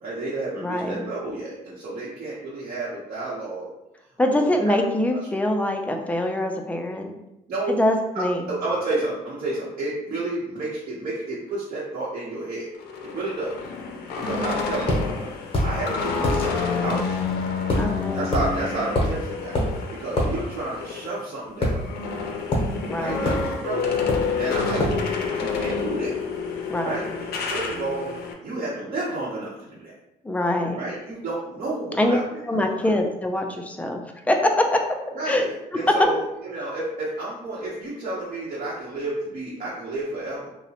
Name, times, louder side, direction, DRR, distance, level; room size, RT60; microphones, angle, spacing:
voice 1, 0.0-3.7 4.3-4.8 5.1-5.2 7.5-7.8 8.1-12.7 13.0-13.6 14.2-15.3 15.6-17.2 18.1-22.0 23.0-23.8 24.4-24.8 25.3-26.1 26.8-28.1 28.4-29.9 30.8-32.2 32.5-32.9 35.1-40.5, right 2 dB, 55° right, -7 dB, 0.8 m, -31 dB
voice 2, 0.6-1.0 4.2-7.1 7.8-8.4 17.8-18.3 22.9-23.2 26.7-27.0 30.2-30.8 32.0-34.0 34.3-34.8 35.3-35.4 35.9-36.0, left 1 dB, 10° left, 3 dB, 0.3 m, -23 dB
sound 1, 12.7-21.1 21.5-28.3, left 5 dB, 85° left, 0.4 m, -29 dB
sound 2, 14.9-15.0 15.5-15.7 16.2-16.4 17.7-17.9 18.3-18.5 18.9-19.2 19.5-19.7 20.2-20.3 21.6-22.2 22.5-22.7 23.2-23.5 24.1-24.3 24.8-25.0, left 1 dB, 35° left, 0.7 m, -23 dB
2.8 x 2.0 x 2.8 m, 0.88 s
cardioid pair, 120°, 16 cm